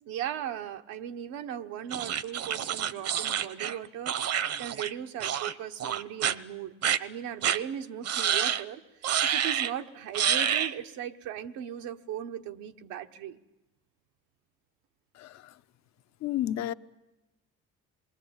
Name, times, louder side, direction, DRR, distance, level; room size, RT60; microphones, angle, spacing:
voice 1, 0.0-6.7 7.0-13.4, right 10 dB, 85° right, 1.3 m, -38 dB
sound 1, 1.9-4.9 5.2-5.5 5.8-6.3 6.8-7.0 7.4-7.6 8.0-8.6 9.0-9.7 10.1-10.7, right 9 dB, 55° right, 1.0 m, -28 dB
voice 2, 15.1-15.5 16.2-16.7, left 12 dB, 65° left, 0.8 m, -31 dB
27.5 x 21.5 x 8.8 m
supercardioid pair, 80°, 29 cm